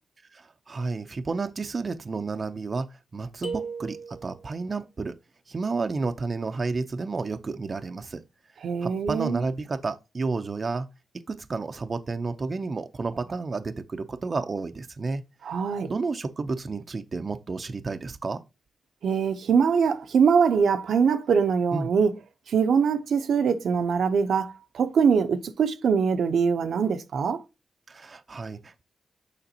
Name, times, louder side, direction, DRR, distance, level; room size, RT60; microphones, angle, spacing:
voice 1, 0.3-2.9 3.1-5.1 5.5-8.2 8.8-10.9 11.3-15.2 15.9-18.4 21.7-21.9 27.9-28.8, right 4 dB, 45° right, 0.6 m, -31 dB
sound 1, 3.4-4.5, right 4 dB, 85° left, 2.1 m, -36 dB
voice 2, 8.6-9.4 15.4-15.9 19.0-22.1 22.5-27.4, right 6 dB, 80° right, 0.7 m, -23 dB
6.8 x 5.0 x 2.8 m
cardioid pair, 70°, 0 cm